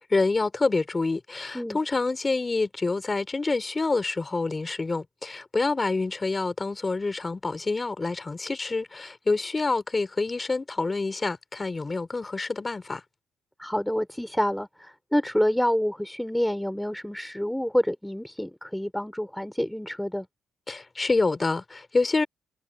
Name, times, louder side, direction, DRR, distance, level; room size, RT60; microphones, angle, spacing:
voice 1, 0.1-13.0 20.7-22.3, left 3 dB, 25° left, 3.3 m, -27 dB
voice 2, 13.6-20.3, equal, 5° left, 4.5 m, -27 dB
cardioid pair, 90°, 0 cm